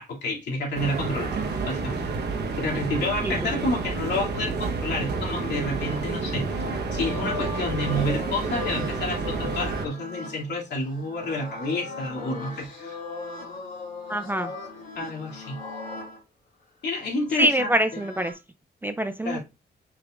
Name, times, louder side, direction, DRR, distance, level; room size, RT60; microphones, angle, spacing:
voice 1, 0.0-2.0 2.5-6.5 6.9-13.0 15.0-15.6 16.8-18.0 19.2-19.4, left 1 dB, 75° left, 2.4 m, -29 dB
sound 1, 0.7-9.9, right 4 dB, 70° right, 1.0 m, -30 dB
sound 2, 4.5-16.2 17.3-18.3, left 3 dB, 55° left, 2.9 m, -38 dB
voice 2, 14.1-14.5 17.4-18.3 18.8-19.4, equal, 10° right, 0.4 m, -24 dB
6.7 x 5.8 x 2.4 m
wide cardioid pair, 165°, 18 cm